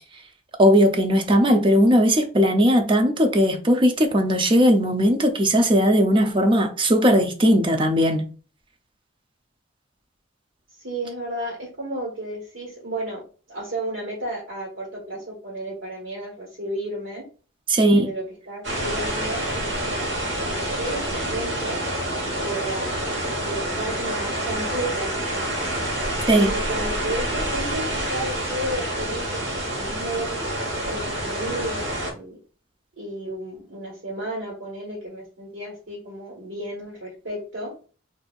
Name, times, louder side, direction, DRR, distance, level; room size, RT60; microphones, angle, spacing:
voice 1, 0.6-8.2 17.7-18.1 26.3-26.5, equal, 25° right, 0.5 m, -18 dB
voice 2, 10.7-13.2 13.5-17.2 17.8-20.0 20.4-21.8 22.3-25.5 26.4-30.5 30.9-32.4 33.0-37.7, right 1 dB, 85° right, 1.4 m, -33 dB
sound 1, 18.6-32.1, right 1 dB, 65° right, 1.2 m, -27 dB
4.2 x 2.6 x 2.4 m
head